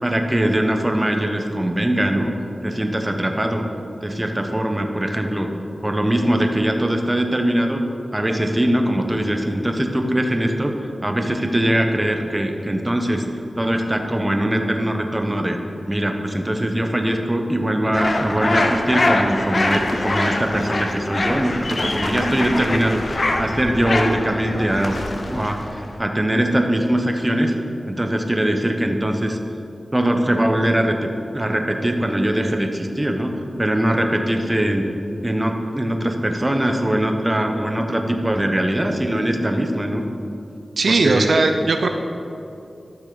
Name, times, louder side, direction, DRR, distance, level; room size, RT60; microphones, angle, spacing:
voice 1, 0.0-2.3 2.6-3.7 4.0-5.5 5.8-7.8 8.1-10.7 11.0-13.2 13.6-15.6 15.9-25.0 25.3-27.5 27.9-29.4 29.9-33.3 33.6-34.9 35.2-40.0 40.9-41.3, right 1 dB, 20° right, 4 dB, 0.9 m, -21 dB
sound 1, 17.9-26.0, left 2 dB, 55° left, 0.8 m, -24 dB
voice 2, 40.8-41.9, right 3 dB, 75° right, 5 dB, 0.5 m, -18 dB
12.0 x 6.2 x 4.0 m, 2.7 s
cardioid pair, 60°, 0 cm